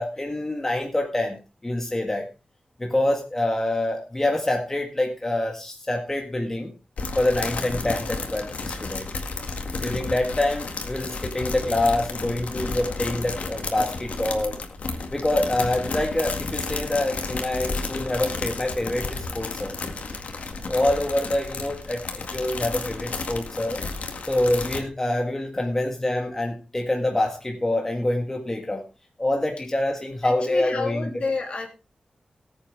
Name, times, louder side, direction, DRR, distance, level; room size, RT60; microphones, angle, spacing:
voice 1, 0.0-2.3 2.8-6.7 7.2-9.1 9.8-14.6 15.1-19.7 20.6-23.8 24.2-28.8 29.2-31.1, left 1 dB, 15° left, 1 dB, 1.8 m, -26 dB
sound 1, 7.0-24.8, left 3 dB, 80° left, 2.0 m, -32 dB
voice 2, 30.2-31.7, left 3 dB, 55° left, 2 dB, 3.2 m, -30 dB
19.0 x 8.5 x 3.4 m, 0.30 s
wide cardioid pair, 140°, 2 cm